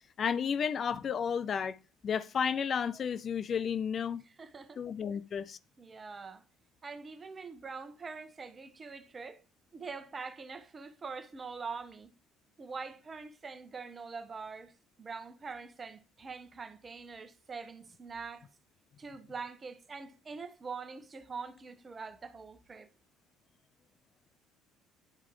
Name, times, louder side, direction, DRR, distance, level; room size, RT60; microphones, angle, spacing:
voice 1, 0.2-1.8 2.0-4.2 4.8-5.6, left 7 dB, 45° left, 0.5 m, -32 dB
voice 2, 4.2-4.8 5.8-6.4 6.8-9.4 9.7-12.1 12.6-18.5 19.0-22.9, right 4 dB, 35° right, 1.2 m, -44 dB
11.0 x 4.6 x 3.8 m
hypercardioid pair, 60°, 0 cm